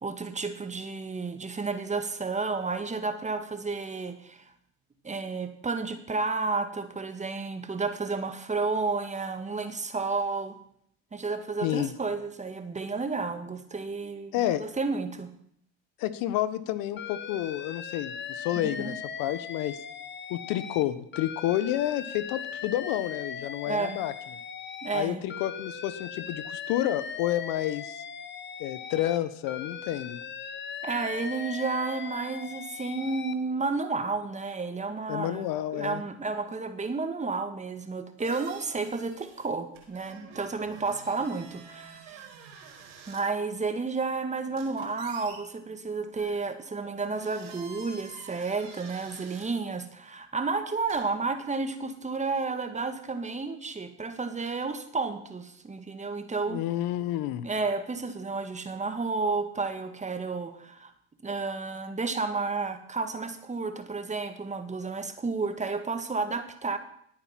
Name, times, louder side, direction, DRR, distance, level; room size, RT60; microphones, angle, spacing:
voice 1, 0.0-4.5 5.0-10.6 11.1-14.3 14.6-15.3 18.6-18.9 23.7-24.0 24.8-25.2 30.8-35.5 35.7-42.2 43.1-56.6 57.4-60.9 61.2-66.8, right 4 dB, 20° right, 8 dB, 1.9 m, -31 dB
voice 2, 11.6-11.9 14.3-14.6 16.0-18.9 19.2-19.8 20.3-24.1 24.9-28.0 28.6-30.2 35.1-36.0 56.5-57.5, left 13 dB, 65° left, 14 dB, 1.2 m, -30 dB
Alarm, 17.0-20.8 21.1-25.0 25.3-29.2 29.5-33.3, left 7 dB, 30° left, 1.2 m, -39 dB
sound 1, 38.2-39.5 39.7-43.2 44.6-45.4 46.1-46.4 47.0-49.5 50.9-51.0, right 5 dB, 85° right, 4.8 m, -48 dB
19.5 x 8.8 x 5.9 m, 0.69 s
supercardioid pair, 90°, 36 cm